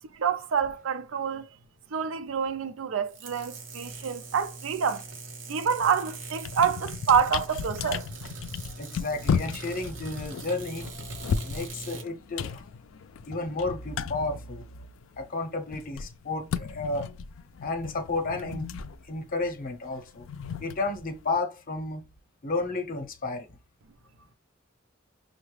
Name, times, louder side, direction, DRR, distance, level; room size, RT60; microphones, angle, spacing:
voice 1, 0.2-1.5 1.9-5.0 5.5-8.0, right 7 dB, 85° right, 0.5 m, -27 dB
sound 1, 3.1-12.1, right 3 dB, 65° right, 1.0 m, -42 dB
sound 2, 5.8-6.0 6.3-15.2 15.4-21.4, left 6 dB, 75° left, 0.4 m, -35 dB
voice 2, 8.8-10.9 11.4-12.6 13.3-14.6 15.2-17.1 17.6-18.7 19.1-20.3 20.6-22.1 22.4-23.5, left 3 dB, 45° left, 0.7 m, -32 dB
5.6 x 2.1 x 3.2 m
head